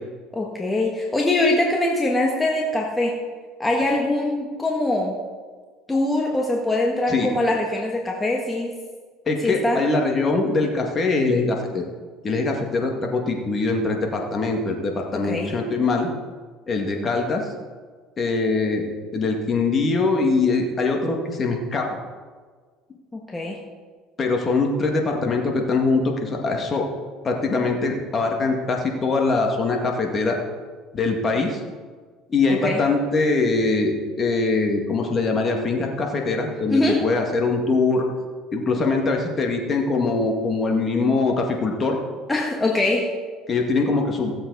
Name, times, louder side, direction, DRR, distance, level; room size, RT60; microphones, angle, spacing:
voice 1, 0.3-3.2 3.6-5.1 5.9-8.7 9.4-9.8 15.1-15.5 23.1-23.6 32.5-32.8 36.7-37.0 42.3-43.1, left 2 dB, 15° left, 0 dB, 1.6 m, -23 dB
voice 2, 9.3-11.8 12.2-16.1 16.7-17.4 18.2-18.8 19.1-21.9 24.2-26.9 27.2-30.4 30.9-31.6 32.3-38.1 38.5-42.0 43.5-44.3, left 3 dB, 35° left, 2 dB, 2.1 m, -22 dB
16.5 x 7.8 x 4.1 m, 1.5 s
supercardioid pair, 95°, 0 cm